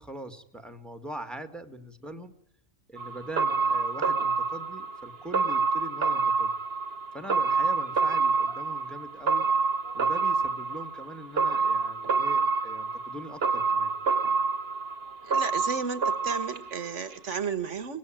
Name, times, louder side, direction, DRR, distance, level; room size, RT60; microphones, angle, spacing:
voice 1, 0.0-2.3 2.9-6.5 7.1-9.5 9.9-13.9, right 1 dB, ahead, 10 dB, 1.7 m, -42 dB
sound 1, 3.0-17.1 17.4-17.5, right 4 dB, 50° right, 1.5 m, -27 dB
voice 2, 15.3-18.0, right 5 dB, 70° right, 14 dB, 1.7 m, -33 dB
24.0 x 19.5 x 8.9 m, 0.71 s
omnidirectional pair, 1.3 m